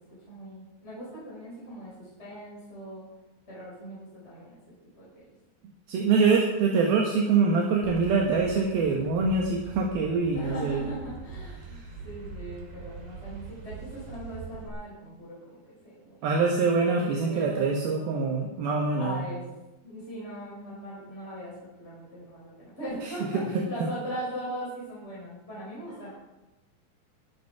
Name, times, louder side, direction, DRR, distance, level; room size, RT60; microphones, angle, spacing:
voice 1, 0.3-3.1 3.5-5.1 10.3-16.3 16.9-17.6 19.0-19.4 19.8-26.1, right 1 dB, 15° left, -8 dB, 5.5 m, -39 dB
voice 2, 5.9-10.9 11.6-11.9 16.2-19.3 23.0-23.6, right 4 dB, 75° right, 0 dB, 3.2 m, -25 dB
sound 1, 7.8-14.7, right 5 dB, 55° right, 3.7 m, -42 dB
21.5 x 8.5 x 4.7 m, 1.0 s
omnidirectional pair, 4.5 m